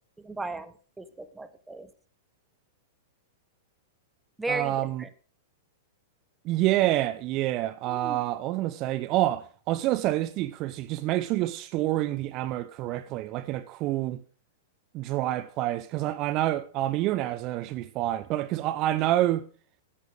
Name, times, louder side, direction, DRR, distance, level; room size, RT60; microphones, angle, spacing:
voice 1, 0.2-1.9 4.4-5.1 7.9-8.2, right 2 dB, 10° right, 1.0 m, -35 dB
voice 2, 4.5-5.0 6.4-14.2 14.9-19.4, right 15 dB, 40° right, 0.4 m, -27 dB
11.0 x 8.0 x 4.9 m
figure-of-eight pair, 100°, 0 cm